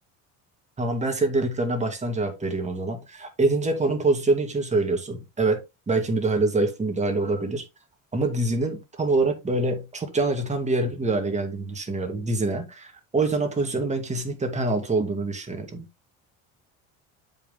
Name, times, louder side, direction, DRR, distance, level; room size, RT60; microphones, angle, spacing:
voice 1, 0.8-7.7 8.1-15.9, right 2 dB, 20° right, 2.2 m, -25 dB
7.6 x 5.6 x 3.7 m
supercardioid pair, 110°, 35 cm